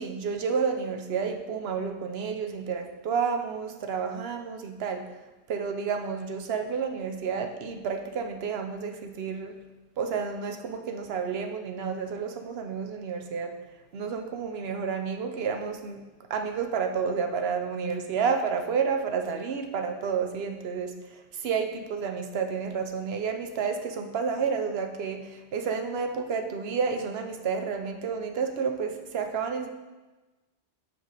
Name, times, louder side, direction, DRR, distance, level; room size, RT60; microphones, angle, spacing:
voice 1, 0.0-5.1 5.5-9.6 10.0-13.6 13.9-16.0 16.3-29.7, right 6 dB, 65° right, 5 dB, 0.9 m, -30 dB
6.4 x 4.6 x 4.0 m, 1.1 s
omnidirectional pair, 1.2 m